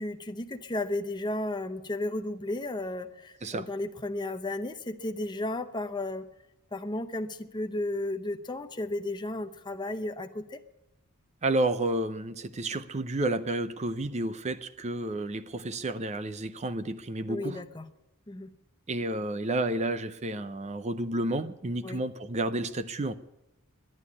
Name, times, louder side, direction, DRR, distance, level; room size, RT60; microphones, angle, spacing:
voice 1, 0.0-6.3 6.7-10.6 17.3-17.8 18.3-18.5 21.8-22.0, left 2 dB, 20° left, 7 dB, 0.8 m, -34 dB
voice 2, 11.4-17.6 18.9-23.1, right 2 dB, 30° right, 11 dB, 0.6 m, -31 dB
11.5 x 10.5 x 9.7 m, 0.89 s
head